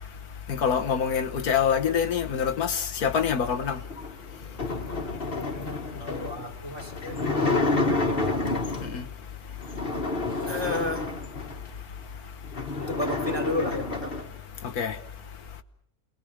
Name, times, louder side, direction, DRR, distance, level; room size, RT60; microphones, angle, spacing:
voice 1, 0.5-3.8 8.9-9.0 14.8-14.9, left 7 dB, 80° left, 1.7 m, -25 dB
sound 1, 3.9-9.0 9.6-11.7 12.1-12.2 12.4-14.3, left 2 dB, 40° left, 2.0 m, -29 dB
voice 2, 6.0-8.4 9.4-11.1 12.8-14.2, left 2 dB, 15° right, 2.9 m, -34 dB
29.5 x 21.5 x 6.2 m
omnidirectional pair, 1.6 m